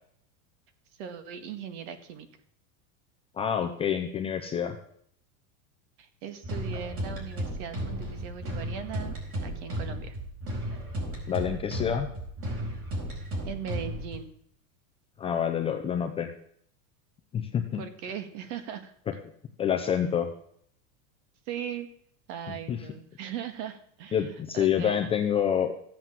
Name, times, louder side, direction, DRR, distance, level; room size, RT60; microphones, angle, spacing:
voice 1, 1.0-2.3 6.0-9.2 9.4-10.2 13.2-14.3 17.8-18.9 21.5-21.9 22.3-25.1, right 8 dB, 55° right, 9 dB, 2.0 m, -39 dB
voice 2, 3.4-4.8 11.3-12.1 15.2-16.3 17.3-17.8 19.6-20.3 22.5-22.8 24.1-25.7, left 8 dB, 15° left, 4 dB, 0.5 m, -27 dB
sound 1, 6.4-14.2, right 1 dB, 30° right, 4.5 m, -34 dB
14.5 x 8.1 x 7.4 m, 0.67 s
supercardioid pair, 165°, 44 cm